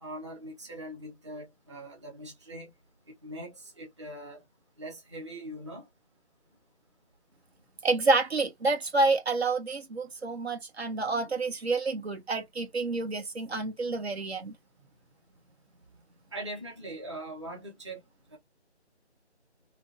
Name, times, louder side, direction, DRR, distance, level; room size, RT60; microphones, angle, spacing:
voice 1, 0.0-2.7 3.2-4.4 4.8-5.9 16.3-18.0 18.3-18.4, right 1 dB, 25° right, 0.9 m, -41 dB
voice 2, 7.8-14.5, right 3 dB, 60° right, 1.0 m, -28 dB
2.9 x 2.5 x 2.6 m
figure-of-eight pair, 170°, 35 cm